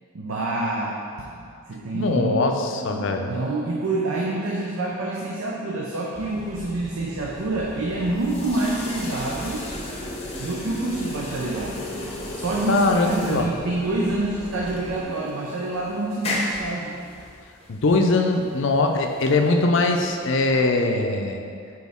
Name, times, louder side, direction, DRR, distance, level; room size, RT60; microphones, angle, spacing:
voice 1, 0.1-1.4 1.7-2.4 2.9-9.6 10.4-11.9 12.3-16.9, right 2 dB, 75° right, -3 dB, 0.6 m, -27 dB
voice 2, 1.9-3.3 12.7-13.5 17.7-21.4, left 2 dB, 55° left, 4 dB, 0.5 m, -21 dB
sound 1, 6.1-15.0, equal, 5° left, 1.2 m, -39 dB
sound 2, 7.9-20.3, left 1 dB, 30° left, 0.8 m, -35 dB
6.3 x 4.5 x 3.5 m, 2.4 s
head